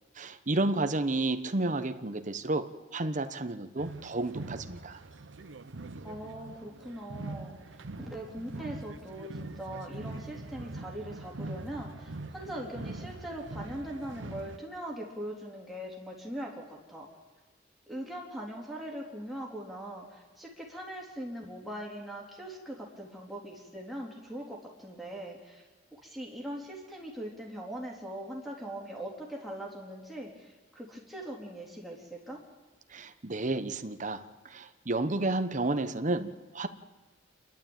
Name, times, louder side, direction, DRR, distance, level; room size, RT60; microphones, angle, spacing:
voice 1, 0.2-5.0 32.9-36.7, right 2 dB, 40° right, 9 dB, 1.0 m, -31 dB
sound 1, 3.8-14.6, right 2 dB, 75° right, 0.8 m, -43 dB
voice 2, 6.0-17.1 17.9-25.6 25.9-32.4, right 1 dB, ahead, -3 dB, 3.7 m, -41 dB
28.0 x 12.0 x 9.0 m, 1.3 s
head